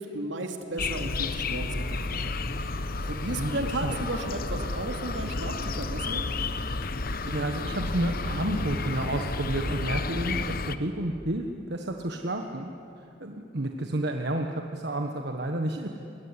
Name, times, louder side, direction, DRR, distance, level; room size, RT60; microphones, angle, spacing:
voice 1, 0.0-2.4 3.0-6.3, right 1 dB, 75° right, 4 dB, 2.8 m, -34 dB
sound 1, 0.8-10.8, left 3 dB, 50° left, 1.0 m, -31 dB
voice 2, 3.2-4.0 7.2-12.7 13.0-15.9, right 1 dB, 60° right, 4 dB, 1.4 m, -31 dB
27.0 x 22.0 x 9.8 m, 2.7 s
head